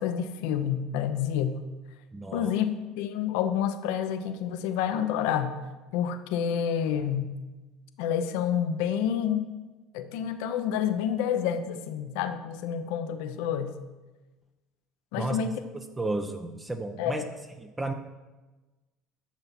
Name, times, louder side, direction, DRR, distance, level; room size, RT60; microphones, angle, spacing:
voice 1, 0.0-1.6 2.3-5.5 5.9-7.3 8.0-9.5 9.9-13.7 15.1-15.6 17.0-17.3, left 9 dB, 70° left, 9 dB, 0.9 m, -28 dB
voice 2, 2.1-2.5 15.2-15.4 16.0-17.2 17.6-17.9, right 2 dB, 15° right, 5 dB, 0.9 m, -32 dB
11.5 x 6.9 x 6.0 m, 1.2 s
hypercardioid pair, 65°, 0 cm